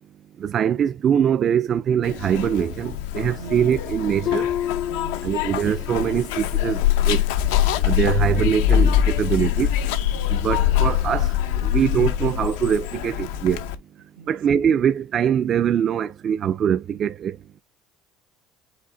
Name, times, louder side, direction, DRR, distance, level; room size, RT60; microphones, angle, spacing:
voice 1, 0.4-4.5 5.2-7.2 7.8-9.7 10.3-11.3 11.6-13.6 14.3-17.4, right 8 dB, 45° right, 0.4 m, -22 dB
Zipper (clothing), 2.0-13.8, left 11 dB, 85° left, 0.6 m, -23 dB
voice 2, 3.4-3.8 4.9-5.2 10.1-10.5 14.2-14.3, right 7 dB, 90° right, 1.0 m, -41 dB
Harp, 4.3-6.0 6.4-6.8 7.3-7.5, left 10 dB, 55° left, 0.7 m, -29 dB
5.2 x 2.7 x 3.8 m
supercardioid pair, 90°, 0 cm